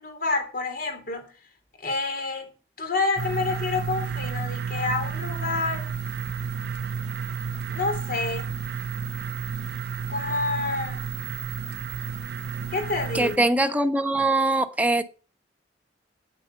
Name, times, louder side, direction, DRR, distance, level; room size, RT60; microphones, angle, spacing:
voice 1, 0.0-1.3 1.8-2.5 2.8-5.9 7.7-8.5 10.1-11.0 12.7-13.5, left 3 dB, 55° left, 3.3 m, -28 dB
sound 1, 3.2-13.4, right 6 dB, 60° right, 0.6 m, -32 dB
voice 2, 13.1-15.0, right 2 dB, 10° right, 1.1 m, -22 dB
9.2 x 9.2 x 6.7 m
head